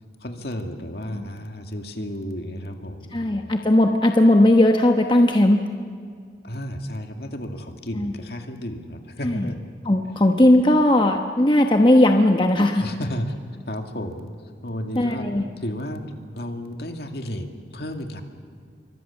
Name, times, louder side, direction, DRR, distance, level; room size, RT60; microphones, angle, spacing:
voice 1, 0.2-3.5 6.4-9.6 12.8-13.3 13.7-14.3 14.6-15.3 15.6-18.2, equal, 60° left, 5 dB, 2.3 m, -32 dB
voice 2, 3.1-5.6 8.0-8.1 9.2-9.5 9.8-12.9 15.0-15.4, left 1 dB, 25° left, 4 dB, 1.0 m, -17 dB
27.0 x 24.0 x 7.2 m, 2.1 s
head